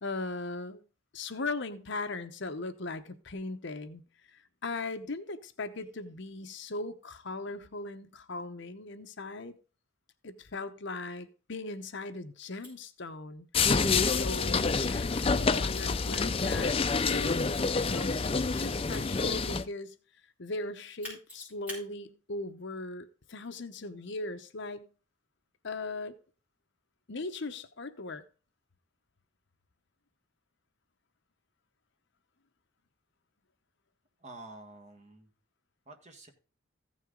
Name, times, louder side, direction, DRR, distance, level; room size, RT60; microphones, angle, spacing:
voice 1, 0.0-0.8 1.1-4.0 4.3-9.5 10.2-13.5 14.1-17.5 17.8-18.2 18.4-19.9 20.4-24.9 25.6-26.2 27.1-28.2, left 2 dB, 55° left, 0.9 m, -39 dB
Mechanisms, 12.6-12.7 13.6-15.2 15.7-19.2 21.0-21.8, left 1 dB, 5° right, 6.0 m, -46 dB
sound 1, 13.5-19.6, left 4 dB, 25° left, 0.5 m, -27 dB
voice 2, 34.2-35.3 35.9-36.3, right 2 dB, 35° right, 1.6 m, -49 dB
15.0 x 6.4 x 3.8 m
head